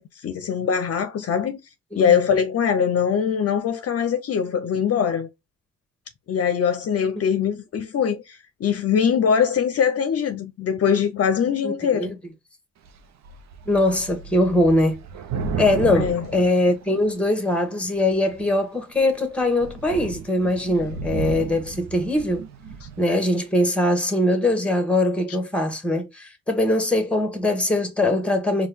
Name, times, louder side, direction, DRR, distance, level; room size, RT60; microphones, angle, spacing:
voice 1, 0.0-1.6 1.9-5.3 6.3-12.1 16.0-16.3, left 7 dB, 50° left, 0.6 m, -22 dB
voice 2, 11.6-12.2 13.7-15.0 15.6-22.4 23.0-28.7, left 1 dB, 5° left, 1.2 m, -22 dB
Thunder / Rain, 12.8-13.0 13.2-17.4 18.1-18.5 19.0-19.1 19.4-23.1, right 6 dB, 65° right, 0.7 m, -33 dB
4.3 x 2.3 x 3.4 m
cardioid pair, 90°, 30 cm